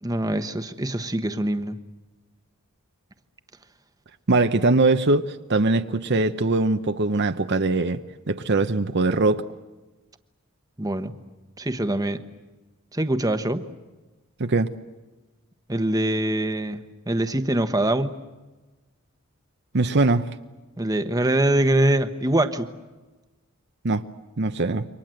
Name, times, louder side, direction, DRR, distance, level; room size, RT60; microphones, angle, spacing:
voice 1, 0.0-1.8 10.8-11.1 11.6-12.2 12.9-13.6 15.7-18.1 20.8-22.7, right 1 dB, 15° right, 1.1 m, -23 dB
voice 2, 4.3-8.0 8.3-9.4 14.4-14.7 19.7-20.3 23.8-24.0 24.4-24.8, right 2 dB, 55° right, 0.8 m, -21 dB
28.5 x 24.0 x 7.8 m
head